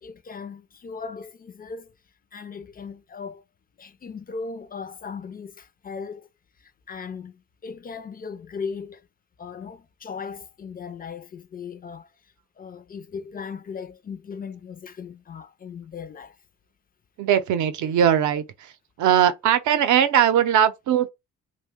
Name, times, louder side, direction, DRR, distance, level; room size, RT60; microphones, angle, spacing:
voice 1, 0.0-2.0 2.3-3.4 3.8-6.3 6.6-9.1 9.4-16.4, left 5 dB, 30° left, 0.4 m, -38 dB
voice 2, 17.2-18.7 19.0-21.1, right 9 dB, 75° right, 0.6 m, -20 dB
2.6 x 2.2 x 3.5 m
cardioid pair, 90°, 30 cm